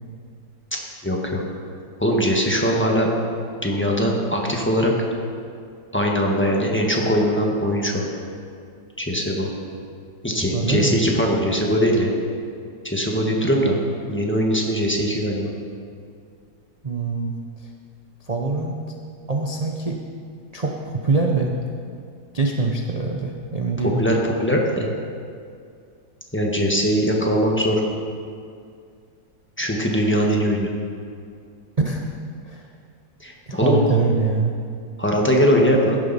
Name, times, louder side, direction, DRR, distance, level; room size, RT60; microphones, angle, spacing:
voice 1, 1.0-1.4 2.0-3.1 3.6-4.9 5.9-8.1 9.0-9.5 10.2-12.1 12.8-13.8 14.1-15.5 24.0-24.9 26.3-27.8 29.6-30.7 33.2-33.8 35.0-36.0, equal, 5° left, -1 dB, 1.2 m, -21 dB
voice 2, 10.5-11.0 16.8-17.7 18.3-19.0 19.3-20.0 20.5-21.6 22.3-24.0 31.8-32.0 32.4-32.7 33.5-34.5, right 3 dB, 55° right, 0 dB, 0.4 m, -24 dB
15.5 x 10.5 x 4.1 m, 2.3 s
omnidirectional pair, 2.0 m